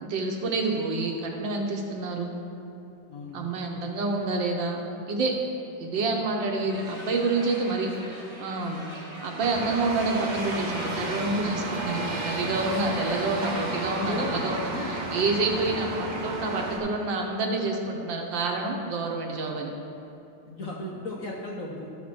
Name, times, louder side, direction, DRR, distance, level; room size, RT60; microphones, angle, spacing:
voice 1, 0.0-2.4 3.3-4.8 5.1-5.3 5.8-19.7, right 3 dB, 70° right, 1 dB, 1.6 m, -28 dB
voice 2, 3.1-3.4 13.9-14.9 15.5-15.7 20.4-21.9, left 2 dB, 55° left, -2 dB, 0.9 m, -36 dB
sound 1, 6.7-14.3, equal, 20° right, 1.0 m, -43 dB
sound 2, 9.4-16.8, right 2 dB, 45° right, 0.6 m, -32 dB
12.5 x 4.3 x 6.0 m, 2.8 s
omnidirectional pair, 2.2 m